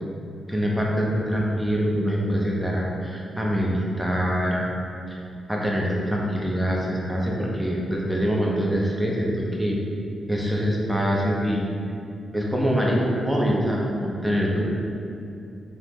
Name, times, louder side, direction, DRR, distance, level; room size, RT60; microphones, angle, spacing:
voice 1, 0.5-4.8 5.1-5.2 5.5-9.8 10.3-11.6 12.3-14.6, equal, 10° right, -3 dB, 0.5 m, -24 dB
3.5 x 2.1 x 2.9 m, 2.6 s
cardioid pair, 80°, 0 cm